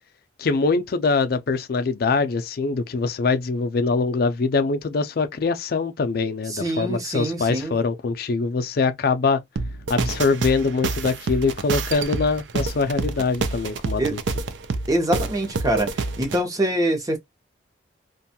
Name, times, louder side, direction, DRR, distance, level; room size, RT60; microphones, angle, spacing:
voice 1, 0.4-9.4 9.9-14.2, left 4 dB, 55° left, 0.4 m, -23 dB
voice 2, 6.5-7.7 14.0-14.1 14.9-15.9 16.2-17.2, right 1 dB, 20° right, 0.7 m, -24 dB
sound 1, 9.6-16.4, right 4 dB, 70° right, 0.4 m, -28 dB
2.5 x 2.2 x 2.7 m
head